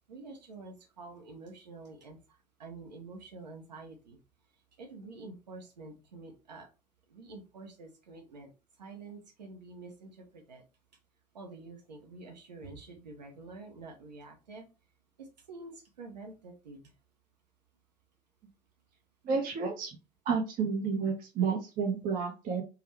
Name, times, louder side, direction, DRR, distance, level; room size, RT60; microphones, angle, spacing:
voice 1, 0.1-2.2 2.6-4.2 4.8-6.7 7.1-8.5 8.8-10.6 11.3-14.6 15.2-16.9, right 3 dB, 80° right, 2 dB, 0.8 m, -48 dB
voice 2, 19.2-19.9 20.2-22.6, right 5 dB, 40° right, 1 dB, 0.9 m, -30 dB
3.4 x 2.3 x 3.1 m, 0.29 s
figure-of-eight pair, 65°, 21 cm